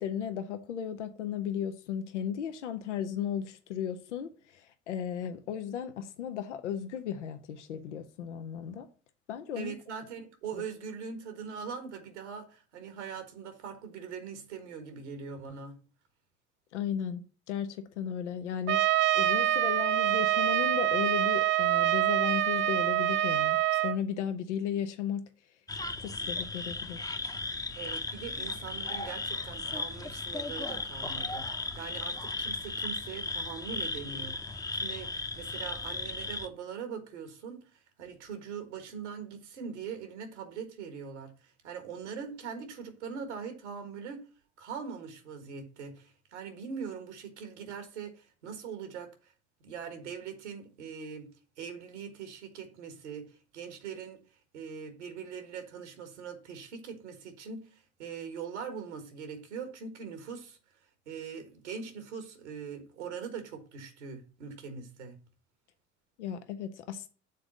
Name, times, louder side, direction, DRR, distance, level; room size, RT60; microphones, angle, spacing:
voice 1, 0.0-8.9 9.3-9.7 16.7-17.2 17.5-18.8 19.1-25.2 26.0-27.2 66.2-67.1, left 9 dB, 90° left, 0.7 m, -35 dB
voice 2, 9.5-15.8 27.8-44.2 44.6-49.3 49.6-51.3 51.6-54.2 54.5-60.6 61.0-65.2, right 6 dB, 85° right, 1.6 m, -42 dB
Trumpet, 18.7-24.0, right 13 dB, 35° right, 0.4 m, -26 dB
sound 1, 25.7-36.5, left 3 dB, 10° left, 0.7 m, -36 dB
6.8 x 3.9 x 6.3 m
hypercardioid pair, 70°, 34 cm